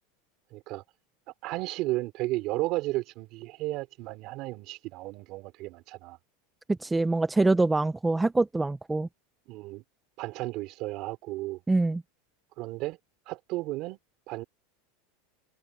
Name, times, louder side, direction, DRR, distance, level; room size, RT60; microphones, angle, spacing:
voice 1, 0.5-0.8 1.4-6.2 9.5-9.8 10.2-11.6 12.6-13.0 13.3-14.0 14.3-14.4, right 19 dB, 40° right, 3.7 m, -33 dB
voice 2, 6.7-9.1 11.7-12.0, right 2 dB, 5° right, 0.5 m, -24 dB
supercardioid pair, 170°, 0 cm